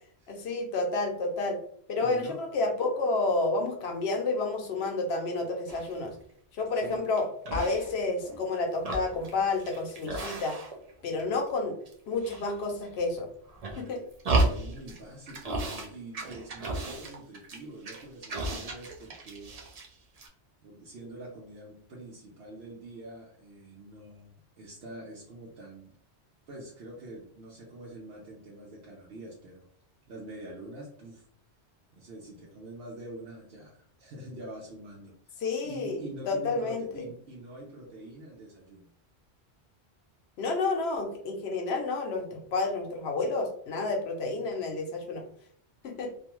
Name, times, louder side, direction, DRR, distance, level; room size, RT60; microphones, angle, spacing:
voice 1, 0.3-1.6 1.9-6.1 6.5-10.6 11.0-11.8 12.1-13.3 13.8-14.0 35.4-36.0 36.3-36.9 40.4-45.2 45.8-46.1, left 3 dB, 70° left, 3 dB, 0.8 m, -30 dB
voice 2, 2.0-2.4 6.7-7.1 14.4-19.5 20.6-25.9 26.5-29.7 30.1-31.2 31.9-38.9, right 1 dB, 75° right, -4 dB, 0.9 m, -45 dB
sound 1, 5.7-6.1 6.6-7.2 7.4-8.4 8.7-10.9 11.2-11.9 12.2-13.0 13.5-15.0 15.3-15.9 16.1-19.9 20.2-20.3, right 2 dB, 50° right, 0.5 m, -33 dB
2.5 x 2.3 x 2.9 m, 0.64 s
omnidirectional pair, 1.1 m